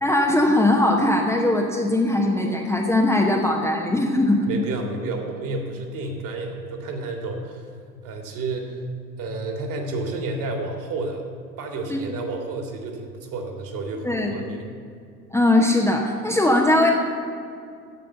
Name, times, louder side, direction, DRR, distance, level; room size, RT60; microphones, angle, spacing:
voice 1, 0.0-4.5 11.9-12.0 14.0-14.5 15.3-16.9, left 1 dB, 5° left, -1 dB, 0.9 m, -20 dB
voice 2, 4.5-7.7 8.0-8.8 9.2-11.3 11.6-14.7, right 3 dB, 40° right, 3 dB, 2.2 m, -31 dB
14.5 x 5.0 x 7.9 m, 2.3 s
figure-of-eight pair, 80°, 50 cm